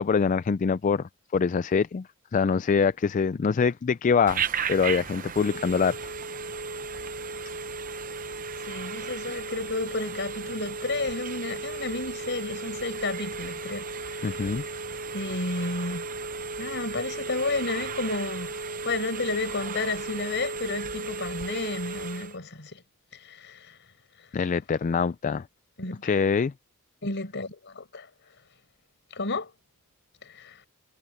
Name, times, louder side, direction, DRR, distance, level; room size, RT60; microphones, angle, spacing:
voice 1, 0.0-2.1 2.3-4.4 4.7-6.0 14.2-14.6 24.3-25.4 26.0-26.5, left 5 dB, 35° left, 0.3 m, -24 dB
Telephone, 4.3-22.4, right 4 dB, 40° right, 0.7 m, -35 dB
voice 2, 8.7-14.7 15.1-16.1 16.6-22.8 23.1-23.8 25.8-26.2 27.0-28.1 29.1-29.5 30.2-30.6, left 3 dB, 55° left, 5.3 m, -32 dB
head